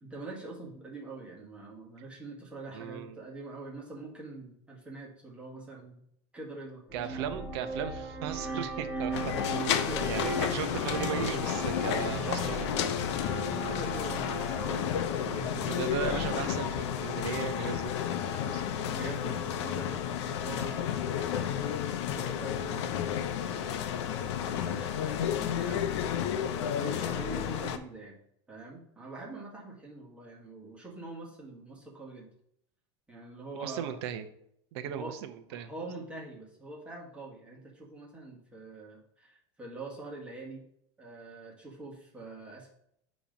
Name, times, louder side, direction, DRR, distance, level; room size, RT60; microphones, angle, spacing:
voice 1, 0.0-6.0 6.3-7.3 8.4-8.6 8.9-9.2 9.8-10.4 12.9-14.7 15.1-15.8 18.1-18.6 18.9-25.8 26.5-28.2 28.5-32.3 33.1-34.0 34.8-35.2 35.5-40.6 41.0-42.7, right 2 dB, 10° right, -3 dB, 1.5 m, -44 dB
voice 2, 2.7-3.2 6.9-9.3 10.0-12.7 15.7-18.6 33.6-34.2 34.7-35.7, right 9 dB, 65° right, 9 dB, 0.7 m, -37 dB
sound 1, 6.9-16.8, right 1 dB, 10° left, 2.2 m, -37 dB
sound 2, 9.1-27.8, left 9 dB, 80° left, 0.6 m, -32 dB
7.2 x 3.0 x 5.1 m, 0.72 s
supercardioid pair, 155°, 15 cm